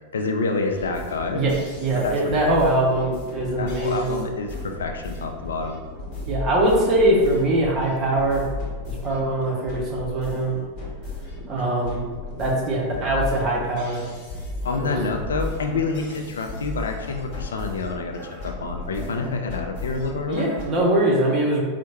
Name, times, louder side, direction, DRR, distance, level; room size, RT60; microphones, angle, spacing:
voice 1, 0.1-1.5 2.0-2.6 3.6-5.8 14.6-20.5, left 3 dB, 65° left, 4 dB, 0.3 m, -28 dB
sound 1, 0.7-20.6, left 2 dB, 40° left, 0.9 m, -35 dB
voice 2, 1.3-4.2 6.3-8.4 8.9-10.6 11.5-12.0 12.3-14.0 14.8-15.1 20.3-21.6, right 1 dB, 30° right, -2 dB, 0.8 m, -22 dB
4.3 x 2.1 x 2.9 m, 1.4 s
figure-of-eight pair, 90°, 0 cm